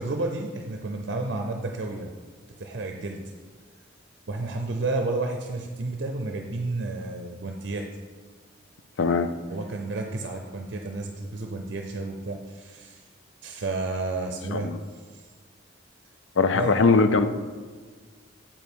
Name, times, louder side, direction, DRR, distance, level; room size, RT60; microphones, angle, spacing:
voice 1, 0.0-2.1 2.6-3.2 4.3-7.9 9.5-13.0 13.4-15.2 16.5-16.7, right 2 dB, 60° right, 3 dB, 0.5 m, -31 dB
voice 2, 9.0-9.3 14.5-14.8 16.4-17.3, left 4 dB, 65° left, 10 dB, 0.4 m, -20 dB
7.2 x 5.2 x 4.6 m, 1.5 s
head